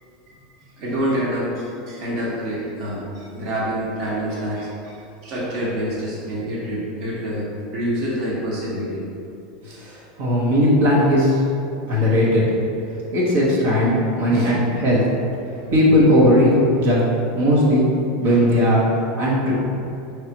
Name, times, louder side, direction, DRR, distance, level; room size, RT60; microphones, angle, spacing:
voice 1, 0.8-5.0 5.2-7.5 7.7-9.1 9.6-9.8 11.9-12.0 14.3-14.5 15.0-15.1 15.5-15.6 18.2-18.4, equal, 50° right, -7 dB, 1.2 m, -27 dB
voice 2, 9.7-11.4 11.9-12.4 13.1-15.0 15.7-16.5 16.8-17.0 17.3-17.9 18.2-19.6, equal, 75° right, -6 dB, 1.2 m, -17 dB
5.5 x 3.2 x 3.0 m, 2.7 s
supercardioid pair, 140°, 0 cm